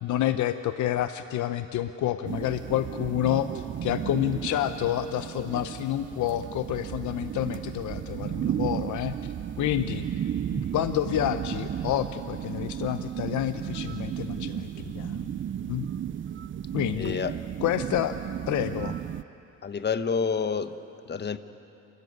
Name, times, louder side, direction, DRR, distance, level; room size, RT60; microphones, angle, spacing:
voice 1, 0.0-10.1 10.5-14.7 14.9-15.3 15.7-15.9 16.7-17.2 17.6-18.2 18.5-19.0, left 12 dB, 75° left, 10 dB, 0.7 m, -29 dB
sound 1, 2.2-19.2, right 9 dB, 40° right, 0.5 m, -34 dB
voice 2, 17.0-17.3 19.6-20.7 21.1-21.4, left 6 dB, 35° left, 11 dB, 1.1 m, -28 dB
29.5 x 13.5 x 9.5 m, 2.7 s
cardioid pair, 90°, 30 cm